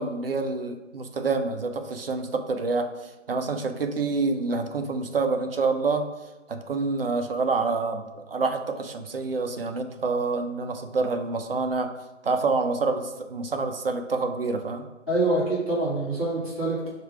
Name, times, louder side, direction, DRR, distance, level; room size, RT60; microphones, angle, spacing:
voice 1, 0.0-6.1 6.5-11.9 12.2-14.9, right 3 dB, 50° right, 6 dB, 0.5 m, -27 dB
voice 2, 15.1-16.9, right 2 dB, ahead, -17 dB, 1.0 m, -25 dB
4.5 x 2.5 x 4.6 m, 1.1 s
hypercardioid pair, 165°, 37 cm